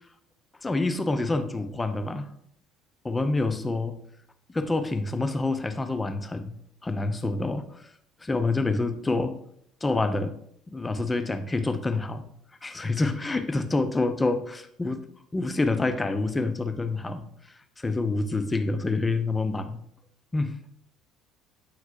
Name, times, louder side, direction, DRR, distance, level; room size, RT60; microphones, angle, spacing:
voice 1, 0.6-2.3 3.0-3.9 4.5-7.7 8.2-9.4 9.8-10.4 10.7-12.3 12.6-15.0 15.3-17.3 17.8-19.8 20.3-20.6, left 3 dB, 15° left, 9 dB, 0.6 m, -27 dB
8.3 x 5.9 x 2.6 m, 0.69 s
figure-of-eight pair, 55°, 0 cm